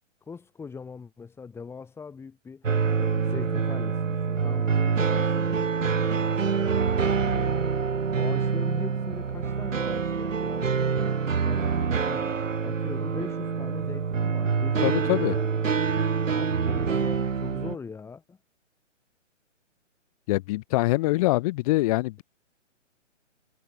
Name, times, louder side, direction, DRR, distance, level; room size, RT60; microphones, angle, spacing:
voice 1, 0.3-2.7 3.0-6.4 7.2-7.8 8.2-11.0 11.4-12.3 12.6-15.5 16.3-18.4, left 5 dB, 5° left, 7.1 m, -41 dB
sound 1, 2.6-17.8, right 6 dB, 80° right, 2.6 m, -26 dB
voice 2, 14.8-15.4 20.3-22.2, left 19 dB, 30° left, 8.0 m, -24 dB
hypercardioid pair, 155°, 38 cm